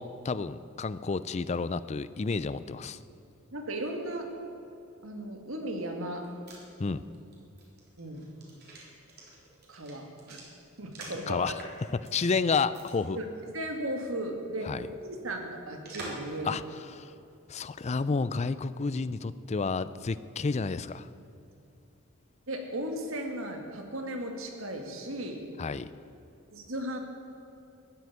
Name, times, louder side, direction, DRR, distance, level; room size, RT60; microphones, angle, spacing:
voice 1, 0.0-3.0 6.8-7.0 11.3-11.5 12.1-13.2 14.7-14.9 16.4-16.6 16.9-17.1 17.5-21.1 25.6-25.9, left 4 dB, 30° left, 15 dB, 0.4 m, -30 dB
voice 2, 3.5-4.3 5.0-6.3 8.0-8.3 9.7-10.4 10.8-11.6 13.1-13.2 13.5-16.6 22.5-25.4 26.5-27.0, right 1 dB, 70° right, 3 dB, 2.1 m, -36 dB
sound 1, 6.2-11.3 11.6-12.3 12.7-12.9 13.2-13.3 15.8-16.3 16.7-16.8, right 2 dB, 50° right, 3.7 m, -47 dB
14.5 x 8.0 x 9.9 m, 2.7 s
head